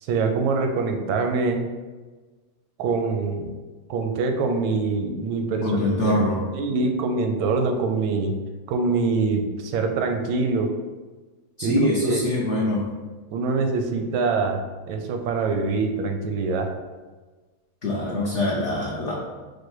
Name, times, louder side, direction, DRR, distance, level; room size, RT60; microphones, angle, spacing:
voice 1, 0.0-1.6 2.8-3.5 3.9-5.8 6.0-6.1 6.5-8.4 8.7-10.7 11.6-12.3 13.3-14.6 14.9-16.7, right 4 dB, 85° right, 4 dB, 1.4 m, -24 dB
voice 2, 5.6-6.4 11.6-12.9 17.8-19.1, left 1 dB, 70° left, -5 dB, 0.7 m, -24 dB
4.6 x 2.2 x 4.5 m, 1.3 s
omnidirectional pair, 2.1 m